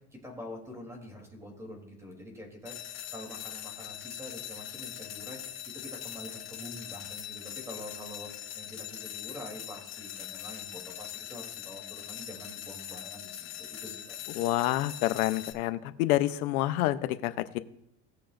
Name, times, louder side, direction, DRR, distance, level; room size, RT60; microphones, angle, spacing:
voice 1, 0.1-2.8 3.1-5.4 5.6-8.3 8.5-14.5, left 1 dB, 5° right, 0 dB, 3.2 m, -46 dB
sound 1, 2.7-15.5, left 11 dB, 40° left, 1.1 m, -42 dB
voice 2, 14.4-17.6, left 15 dB, 85° left, 11 dB, 0.9 m, -28 dB
18.5 x 6.8 x 2.6 m, 0.80 s
supercardioid pair, 135°, 43 cm